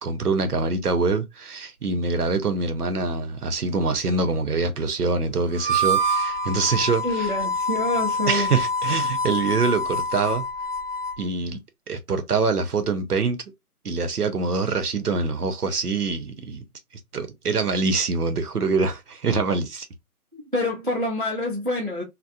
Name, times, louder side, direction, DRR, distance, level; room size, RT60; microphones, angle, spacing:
voice 1, 0.0-7.3 8.3-10.4 11.2-11.6 11.9-13.4 13.8-16.6 17.1-19.9, right 4 dB, 80° right, 0.8 m, -24 dB
Harmonica, 5.5-11.2, equal, 20° left, 0.8 m, -26 dB
voice 2, 7.0-8.5 20.3-22.0, left 1 dB, 35° right, 0.5 m, -26 dB
2.8 x 2.1 x 2.3 m
figure-of-eight pair, 160°, 45 cm